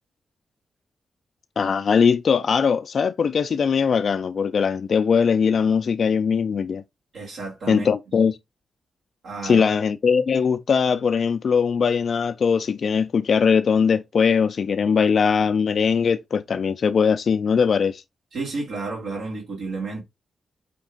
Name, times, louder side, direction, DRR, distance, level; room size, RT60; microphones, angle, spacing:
voice 1, 1.6-6.8 7.7-8.4 9.4-18.0, left 6 dB, 65° left, 0.3 m, -20 dB
voice 2, 7.1-7.9 9.2-9.7 18.3-20.0, right 3 dB, 85° right, 1.7 m, -31 dB
5.1 x 2.4 x 3.7 m
cardioid pair, 60°, 0 cm